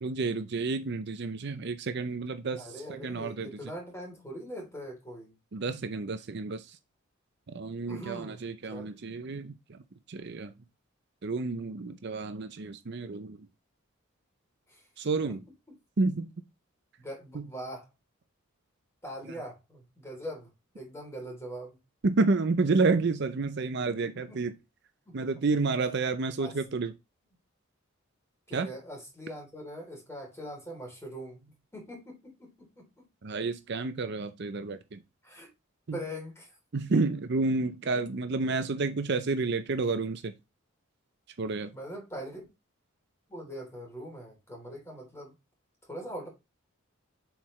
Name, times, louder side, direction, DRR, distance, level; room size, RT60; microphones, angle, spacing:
voice 1, 0.0-2.7 3.0-3.5 5.5-6.8 7.5-9.8 10.1-10.5 11.2-13.4 15.0-15.4 16.0-16.3 17.3-17.4 22.0-24.5 25.1-26.9 28.5-28.7 33.2-35.0 35.9-36.0 36.7-40.3 41.4-41.7, right 3 dB, 55° right, 0.6 m, -30 dB
voice 2, 2.6-5.3 7.9-8.4 8.7-9.0 14.7-14.9 15.3-15.4 17.0-17.9 19.0-20.5 20.7-21.8 24.0-24.4 25.0-25.3 26.4-26.6 28.5-33.0 35.2-35.5 35.9-36.6 41.7-42.4 43.3-45.3 45.8-46.3, equal, 15° left, 3.3 m, -42 dB
7.3 x 4.7 x 3.2 m
head